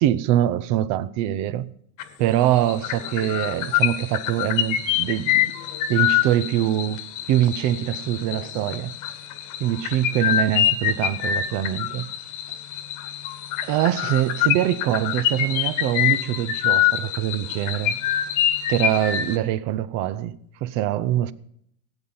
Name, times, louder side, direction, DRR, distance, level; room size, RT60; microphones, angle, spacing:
voice 1, 0.0-1.7 2.2-5.5 5.9-7.0 7.3-8.9 9.6-12.1 13.6-18.0 18.7-21.3, right 12 dB, 35° right, 0.7 m, -23 dB
sound 1, 2.0-2.3 2.6-19.4, left 11 dB, 35° left, 1.4 m, -25 dB
17.0 x 8.8 x 5.6 m
hypercardioid pair, 115°, 49 cm